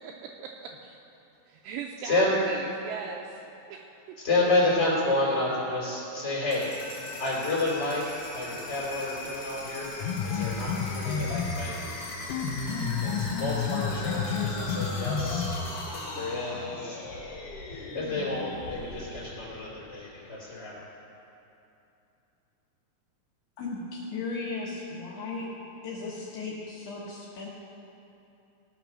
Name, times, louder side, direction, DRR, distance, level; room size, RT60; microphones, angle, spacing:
voice 1, 0.0-1.0 1.5-4.2, right 6 dB, 85° right, 1 dB, 2.8 m, -40 dB
voice 2, 2.0-2.4 4.2-15.5 16.1-17.3 17.7-20.8, left 2 dB, 25° left, -6 dB, 2.6 m, -30 dB
sound 1, 6.4-20.2, left 2 dB, 45° left, 2.9 m, -40 dB
sound 2, 10.0-11.8 12.3-15.8, left 6 dB, 90° left, 3.4 m, -30 dB
voice 3, 23.6-25.5 25.8-27.5, left 3 dB, 70° left, -5 dB, 2.6 m, -36 dB
18.5 x 6.1 x 6.2 m, 2.9 s
omnidirectional pair, 6.0 m